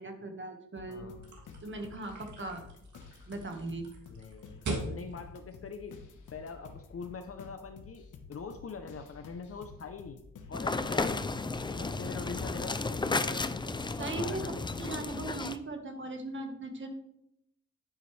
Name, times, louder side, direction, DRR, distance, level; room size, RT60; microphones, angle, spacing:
voice 1, 0.0-1.0 1.6-2.6 3.3-3.9 14.0-14.4 14.8-16.9, right 3 dB, 40° right, 5 dB, 1.7 m, -39 dB
sound 1, 0.8-15.3, left 5 dB, 75° left, 1.3 m, -51 dB
voice 2, 0.9-1.4 4.1-5.9 6.3-10.2 10.5-11.3 11.7-13.6 14.2-14.8, left 5 dB, 45° left, 7 dB, 0.8 m, -44 dB
sound 2, 1.2-6.6, right 2 dB, 65° right, 2.9 m, -42 dB
sound 3, 10.5-15.6, left 3 dB, 15° left, 0.4 m, -33 dB
10.5 x 9.6 x 3.4 m, 0.78 s
wide cardioid pair, 145°, 31 cm